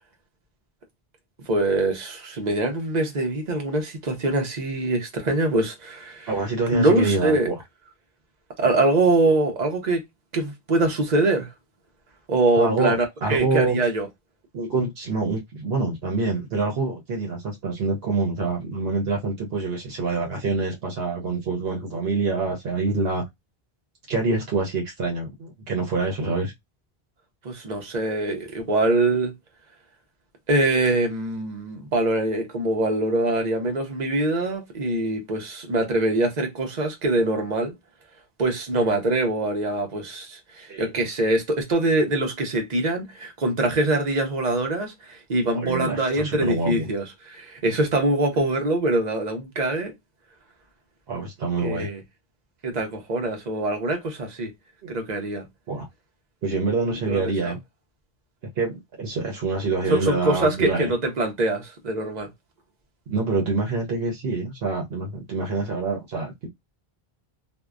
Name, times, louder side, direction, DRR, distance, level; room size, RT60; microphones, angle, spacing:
voice 1, 1.4-6.3 6.7-7.5 8.6-10.0 10.3-11.5 12.3-14.1 27.4-29.3 30.5-37.7 38.4-49.9 51.6-52.0 52.6-54.5 54.9-55.5 57.1-57.5 59.9-62.3, right 2 dB, 50° right, 0.8 m, -23 dB
voice 2, 6.3-7.6 12.6-13.8 14.5-23.2 24.1-26.5 40.7-40.9 45.5-46.9 51.1-51.9 54.8-54.9 55.7-55.9 56.4-57.6 58.6-60.9 63.1-66.5, right 3 dB, 75° right, 0.9 m, -26 dB
2.7 x 2.1 x 2.2 m
omnidirectional pair, 1.0 m